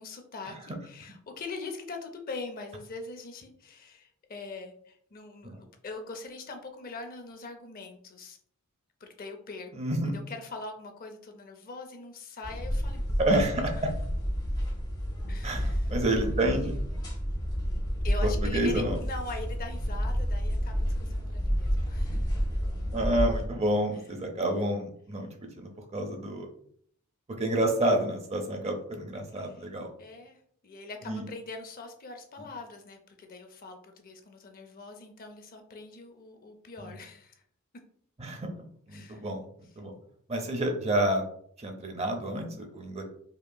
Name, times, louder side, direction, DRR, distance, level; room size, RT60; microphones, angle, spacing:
voice 1, 0.0-8.4 9.0-9.7 10.1-13.0 13.3-13.8 15.3-15.9 18.0-22.3 29.4-29.7 30.0-37.4 38.9-39.3, left 3 dB, 40° left, 5 dB, 0.5 m, -42 dB
voice 2, 9.7-10.2 13.2-13.9 15.4-16.7 18.2-19.0 22.9-26.5 27.4-29.9 31.1-31.2 36.8-36.9 38.2-38.5 38.9-39.4 39.8-39.9 40.3-41.2 41.6-43.0, right 1 dB, 30° right, 4 dB, 0.6 m, -29 dB
sound 1, 12.4-23.5, equal, 20° left, 0.9 m, -30 dB
5.2 x 2.9 x 2.2 m, 0.62 s
head